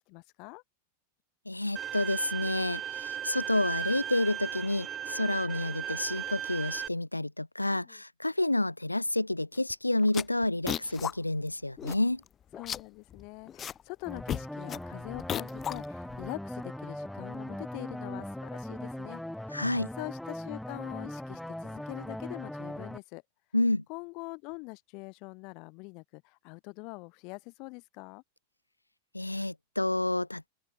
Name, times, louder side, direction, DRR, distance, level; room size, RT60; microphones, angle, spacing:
voice 1, 0.1-0.6 7.6-8.0 12.6-19.7 19.9-23.2 23.9-28.2, left 31 dB, 45° left, 2.9 m, -43 dB
voice 2, 1.5-12.2 19.5-19.9 23.5-23.8 29.1-30.5, left 2 dB, 85° left, 0.8 m, -29 dB
Bowed string instrument, 1.8-6.9, right 9 dB, 25° right, 4.2 m, -36 dB
sound 1, 9.6-9.7 10.0-11.1 11.5-11.6 11.8-12.3 12.5-13.8 14.1-16.3, left 9 dB, 25° left, 1.1 m, -36 dB
sound 2, 14.1-23.0, left 1 dB, 5° left, 6.5 m, -40 dB
open air
figure-of-eight pair, 90°, 0 cm